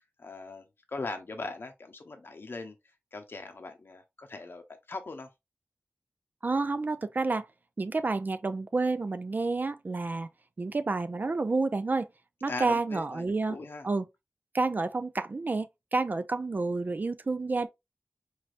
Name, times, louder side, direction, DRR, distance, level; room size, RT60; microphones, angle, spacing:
voice 1, 0.2-2.7 3.1-5.3 12.5-13.9, left 3 dB, 60° left, 0.7 m, -40 dB
voice 2, 6.4-7.5 7.8-10.3 10.6-12.1 12.4-13.6 13.8-14.1 14.5-17.7, right 3 dB, 45° right, 0.3 m, -29 dB
4.2 x 3.2 x 2.5 m
wide cardioid pair, 60°, 4 cm